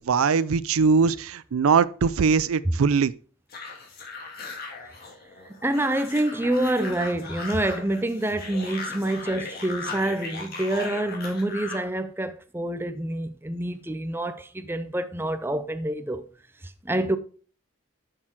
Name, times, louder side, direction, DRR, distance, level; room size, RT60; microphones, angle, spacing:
voice 1, 0.1-3.1, right 5 dB, 90° right, 0.4 m, -21 dB
sound 1, 3.5-11.9, left 4 dB, 45° left, 2.2 m, -38 dB
voice 2, 5.5-16.2 16.8-17.2, right 1 dB, 10° right, 0.6 m, -27 dB
7.4 x 6.5 x 4.5 m
head